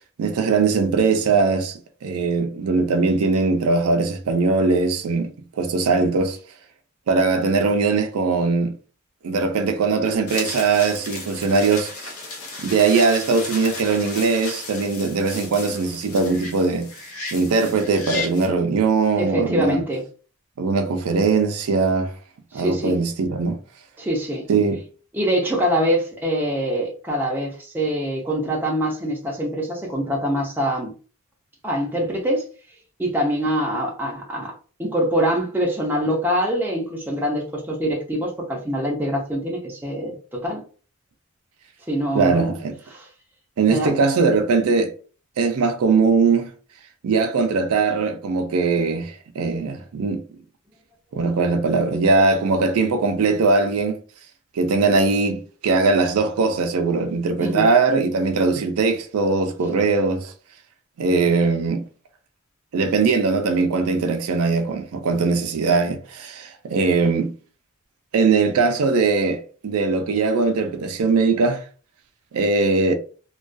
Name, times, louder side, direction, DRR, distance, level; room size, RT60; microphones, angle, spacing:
voice 1, 0.2-5.3 5.6-6.4 7.1-8.7 9.2-12.1 12.6-16.9 17.3-19.8 20.6-22.1 22.5-23.6 24.5-24.8 42.1-42.8 43.6-44.9 45.4-46.5 47.0-50.2 51.1-54.0 54.6-60.3 61.0-61.8 62.7-67.3 68.1-71.6 72.3-72.9, right 4 dB, 80° right, 0.4 m, -20 dB
sound 1, 10.3-18.5, left 3 dB, 75° left, 0.7 m, -34 dB
voice 2, 19.2-20.0 22.5-23.0 24.0-24.4 25.1-30.9 31.6-32.4 33.0-34.5 34.8-40.6 41.9-42.6 42.9-43.1 43.6-44.0 57.4-57.7, equal, 10° right, 0.5 m, -24 dB
2.3 x 2.2 x 2.5 m
head